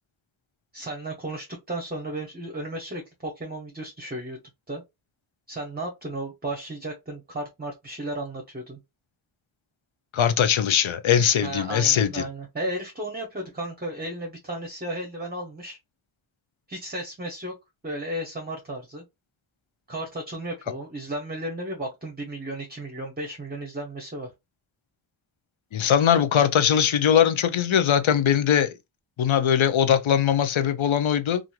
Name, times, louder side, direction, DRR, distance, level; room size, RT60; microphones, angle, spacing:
voice 1, 0.7-4.4 4.7-4.8 5.5-8.8 11.4-15.8 16.7-17.5 17.8-19.0 19.9-24.3, right 1 dB, 20° right, 0.7 m, -34 dB
voice 2, 10.1-12.2 25.7-28.7 29.2-31.4, left 9 dB, 80° left, 0.6 m, -21 dB
2.9 x 2.5 x 2.3 m
wide cardioid pair, 65°, 47 cm